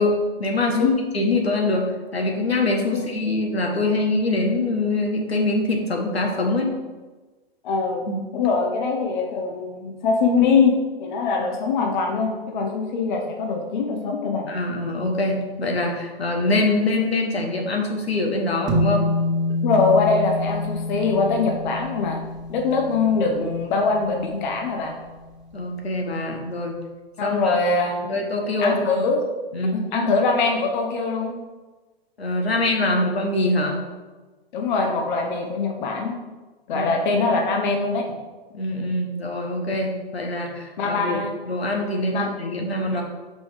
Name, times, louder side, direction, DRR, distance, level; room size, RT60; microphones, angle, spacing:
voice 1, 0.0-6.7 8.1-8.2 14.5-19.1 25.5-26.8 27.2-27.6 28.1-29.0 29.5-29.8 32.2-33.8 36.7-36.9 38.5-43.0, left 2 dB, 80° left, 1 dB, 1.4 m, -24 dB
voice 2, 7.6-8.1 8.3-14.5 19.6-22.2 22.5-24.9 27.2-28.1 28.6-29.2 29.7-31.3 34.5-36.1 36.7-38.1 40.8-41.3 42.1-42.3 42.9-43.0, left 4 dB, 50° left, 2 dB, 1.1 m, -22 dB
sound 1, 18.7-25.3, left 1 dB, 25° right, 1.6 m, -28 dB
5.4 x 5.3 x 4.9 m, 1.2 s
figure-of-eight pair, 110°, 30 cm